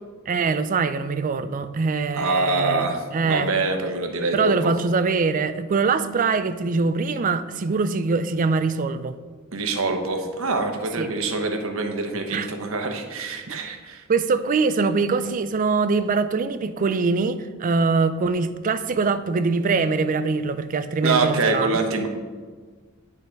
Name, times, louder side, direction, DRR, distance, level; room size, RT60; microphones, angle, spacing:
voice 1, 0.3-3.5 4.3-9.2 11.0-11.1 12.3-12.5 13.5-13.6 14.1-21.8, right 4 dB, 40° right, 11 dB, 0.4 m, -23 dB
voice 2, 2.1-4.7 9.5-14.0 21.0-22.1, right 3 dB, 75° right, 4 dB, 1.0 m, -25 dB
9.3 x 4.1 x 5.2 m, 1.5 s
head